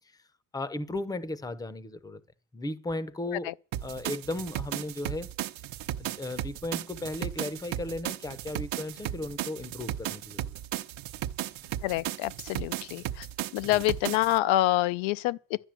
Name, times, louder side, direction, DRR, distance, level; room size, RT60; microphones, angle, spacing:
voice 1, 0.5-2.2 2.5-3.5 3.8-5.3 6.0-10.5 13.6-13.8, left 2 dB, 10° left, 0.6 m, -35 dB
sound 1, 3.7-14.4, right 13 dB, 75° right, 0.9 m, -35 dB
voice 2, 11.8-13.3 13.5-15.7, left 16 dB, 75° left, 0.5 m, -27 dB
12.0 x 9.9 x 7.5 m
cardioid pair, 140°, 47 cm